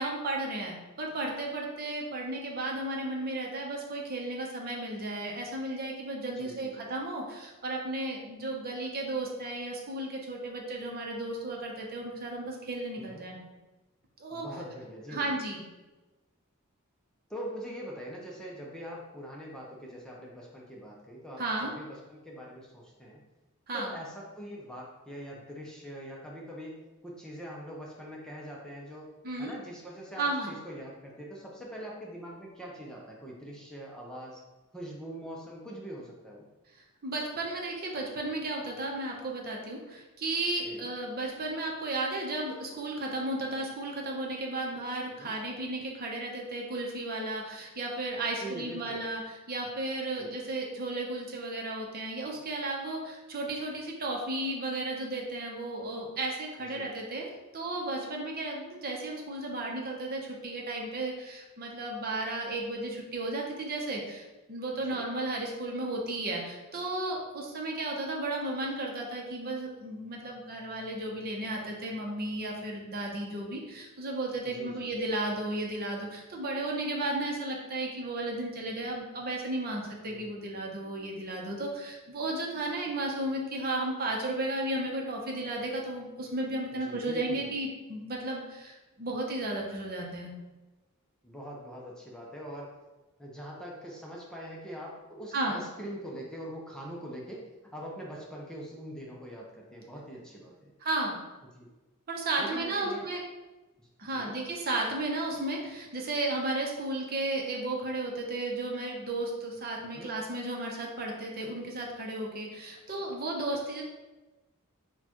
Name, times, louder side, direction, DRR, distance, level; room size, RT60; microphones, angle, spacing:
voice 1, 0.0-13.4 14.2-14.4 15.1-15.6 21.4-21.7 23.7-23.9 29.2-29.5 30.2-30.5 37.0-57.3 57.5-90.3 95.3-95.6 100.8-101.2 102.1-103.2 104.0-113.8, right 2 dB, 45° right, -1 dB, 0.8 m, -34 dB
voice 2, 6.4-6.9 12.9-13.3 14.3-15.4 17.3-23.2 23.7-26.8 27.0-29.1 29.4-34.4 34.7-36.5 40.6-40.9 45.2-45.3 48.4-49.0 50.2-50.4 56.6-56.9 64.9-65.0 74.4-75.0 80.1-80.4 86.7-87.5 91.2-92.8 93.2-100.7 101.5-101.7 102.4-103.1 103.8-104.3 109.8-110.2 113.0-113.1, equal, 5° left, -3 dB, 0.5 m, -43 dB
6.4 x 2.3 x 2.9 m, 1.1 s
head